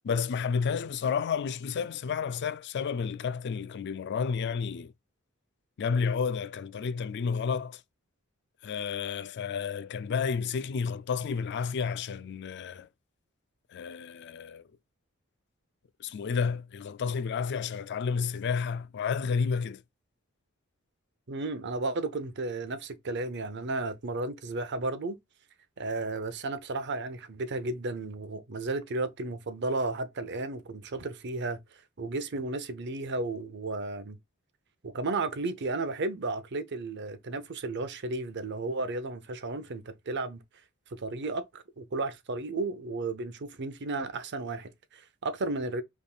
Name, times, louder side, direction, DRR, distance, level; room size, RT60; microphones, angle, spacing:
voice 1, 0.0-4.9 5.8-7.8 8.6-12.9 13.7-14.6 16.0-19.8, left 6 dB, 55° left, 0.4 m, -31 dB
voice 2, 21.3-25.2 25.8-31.6 32.0-34.2 34.8-40.4 40.9-45.8, right 3 dB, 55° right, 0.7 m, -33 dB
5.4 x 3.5 x 2.4 m
head